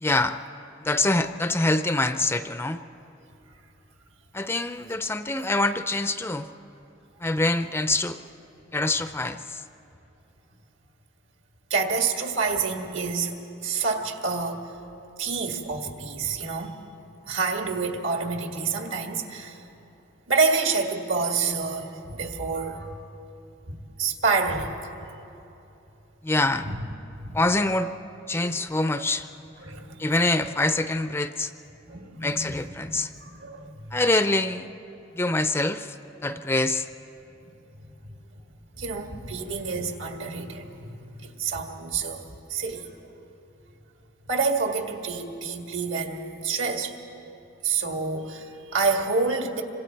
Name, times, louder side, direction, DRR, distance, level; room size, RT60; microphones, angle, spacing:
voice 1, 0.0-0.4 0.8-2.8 4.3-6.5 7.2-8.2 8.7-9.6 26.2-26.7 27.3-27.9 28.3-29.3 30.0-31.5 32.2-33.1 33.9-34.7 35.1-35.9 36.2-36.9, left 2 dB, 10° left, 10 dB, 0.4 m, -25 dB
voice 2, 11.7-13.4 13.6-14.6 15.2-16.8 17.3-19.7 20.3-23.0 23.7-24.8 26.6-26.8 27.2-27.4 28.6-28.7 29.6-30.0 31.8-32.5 32.8-34.0 37.4-37.5 38.8-42.9 44.3-47.0 47.6-49.6, right 4 dB, 75° right, 3 dB, 1.9 m, -28 dB
26.5 x 25.5 x 4.6 m, 3.0 s
head